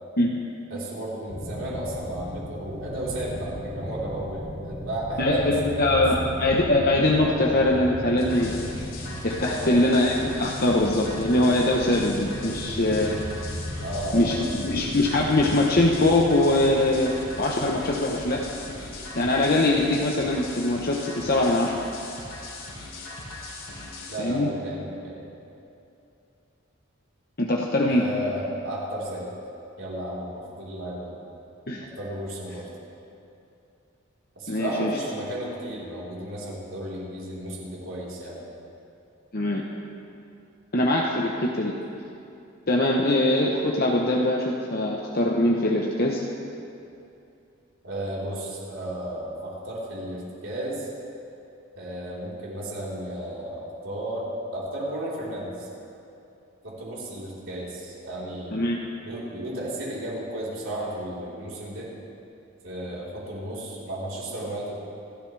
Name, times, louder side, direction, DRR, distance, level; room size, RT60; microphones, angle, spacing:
voice 1, 0.2-0.5 5.2-8.6 9.2-13.2 14.1-18.4 19.2-21.8 24.2-24.5 27.4-28.1 31.7-31.9 34.5-34.9 39.3-39.6 40.7-41.7 42.7-46.2 58.5-58.8, left 1 dB, 45° left, -1 dB, 1.0 m, -22 dB
voice 2, 0.7-6.1 9.5-9.7 13.0-13.1 13.8-14.4 24.1-25.2 27.8-29.3 29.8-31.2 31.8-32.7 34.4-38.4 47.8-50.9 51.8-55.7 56.6-58.6 59.0-61.9 62.6-64.8, right 1 dB, 65° right, -6 dB, 4.0 m, -33 dB
sound 1, 1.3-20.1, equal, 80° left, 3.0 m, -37 dB
sound 2, 8.2-24.2, left 2 dB, 60° left, 3.3 m, -39 dB
28.0 x 12.0 x 3.4 m, 2.7 s
head